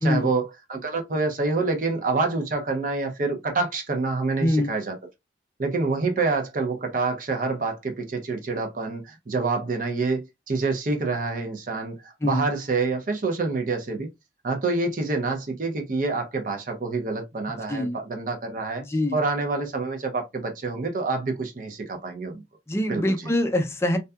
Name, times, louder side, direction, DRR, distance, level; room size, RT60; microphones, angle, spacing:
voice 1, 0.0-5.0 5.6-14.1 14.4-18.8 19.1-22.4 22.9-23.1, right 3 dB, 45° right, 0.6 m, -27 dB
voice 2, 4.4-4.7 12.2-12.5 17.7-18.0 18.8-19.2 22.7-24.0, left 1 dB, 15° left, 0.4 m, -24 dB
2.7 x 2.2 x 2.2 m
head